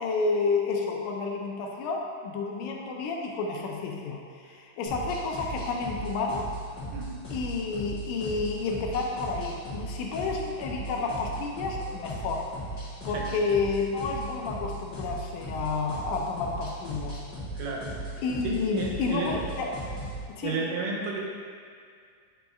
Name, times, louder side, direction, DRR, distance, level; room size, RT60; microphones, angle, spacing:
voice 1, 0.0-6.5 7.3-12.5 13.0-17.2 18.2-19.7 20.4-20.6, left 4 dB, 80° left, 0 dB, 1.9 m, -30 dB
sound 1, 4.8-20.2, right 1 dB, 45° left, 1.5 m, -37 dB
voice 2, 17.6-19.3 20.4-21.2, right 3 dB, 85° right, -2 dB, 2.4 m, -33 dB
8.1 x 5.0 x 2.3 m, 2.1 s
omnidirectional pair, 3.8 m